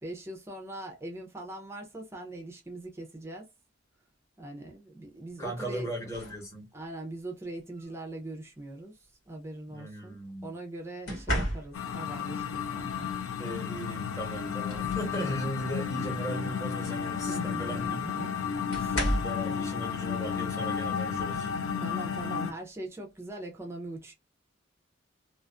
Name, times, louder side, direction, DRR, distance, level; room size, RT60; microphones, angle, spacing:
voice 1, 0.0-3.5 4.4-6.1 6.7-10.2 10.4-13.1 17.2-18.4 18.7-19.0 19.5-19.7 21.8-24.1, right 1 dB, 15° right, 0.5 m, -41 dB
voice 2, 5.4-6.7 9.7-10.5 13.4-18.0 19.1-21.5, equal, 15° left, 1.0 m, -37 dB
sound 1, 6.1-6.5 7.7-8.0 11.1-12.1 13.8-13.9 14.3-15.5 15.9-16.2 17.6-17.7 18.7-19.5 21.2-21.3 21.8-22.1, equal, 70° left, 1.4 m, -33 dB
sound 2, 11.7-22.5, left 7 dB, 85° left, 0.4 m, -33 dB
2.4 x 2.3 x 2.3 m
head